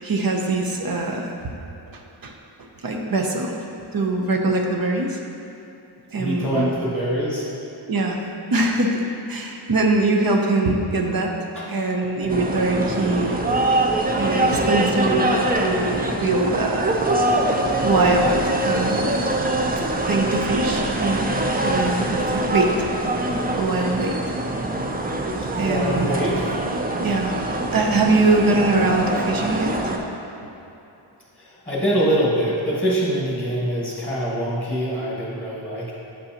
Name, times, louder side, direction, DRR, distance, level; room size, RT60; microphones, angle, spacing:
voice 1, 0.0-1.3 1.9-2.3 2.8-3.5 3.9-5.2 6.1-6.7 7.9-8.2 8.5-11.4 11.7-13.4 14.2-17.0 17.8-19.3 20.1-21.3 21.6-22.9 23.5-24.3 25.4-26.3 27.0-27.4 27.7-29.9, right 2 dB, 50° right, 1 dB, 0.7 m, -22 dB
voice 2, 6.2-7.5 11.5-11.6 25.5-26.5 31.4-35.9, equal, 5° left, -6 dB, 1.4 m, -24 dB
sound 1, 12.3-30.0, right 1 dB, 20° right, 0.4 m, -24 dB
7.6 x 5.3 x 2.9 m, 2.9 s
wide cardioid pair, 80°, 47 cm